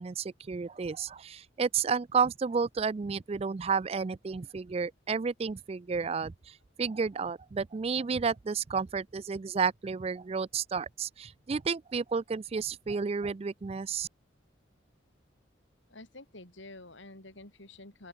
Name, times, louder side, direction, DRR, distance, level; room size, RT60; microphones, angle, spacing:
voice 1, 0.0-14.1, right 5 dB, 30° right, 0.3 m, -31 dB
voice 2, 15.9-18.1, left 2 dB, 75° left, 4.4 m, -49 dB
open air
head